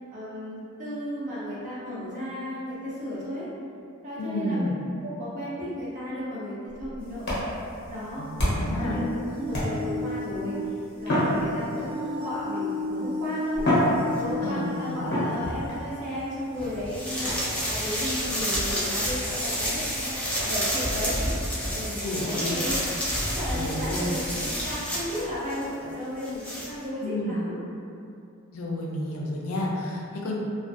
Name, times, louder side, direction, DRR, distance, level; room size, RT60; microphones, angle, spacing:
voice 1, 0.1-3.5 4.0-4.7 5.0-7.3 7.9-13.6 14.2-20.1 20.4-21.2 21.6-22.8 23.3-27.6, left 1 dB, 40° right, -9 dB, 0.7 m, -34 dB
voice 2, 4.2-4.7 8.2-9.0 14.4-15.0 22.0-22.5 23.5-24.2 27.0-27.4 28.5-30.3, left 1 dB, 80° left, -2 dB, 0.4 m, -31 dB
sound 1, 6.7-8.8 9.5-10.1 11.0-12.1 12.9-13.0 13.5-14.6 15.1-15.8 17.3-17.6 18.7-18.9 19.5-19.6 19.9-20.0 20.4-20.5 20.8-21.0 21.4-21.5 21.9-22.0 22.4-22.5 23.4-23.5, equal, 55° left, 0.8 m, -28 dB
sound 2, 8.4-16.0 16.7-16.8 17.8-17.9, left 2 dB, 80° right, 0.6 m, -34 dB
sound 3, 14.2-14.3 15.4-15.6 16.6-25.7 25.9-26.7, equal, 5° left, 0.4 m, -29 dB
2.5 x 2.1 x 2.3 m, 2.5 s
head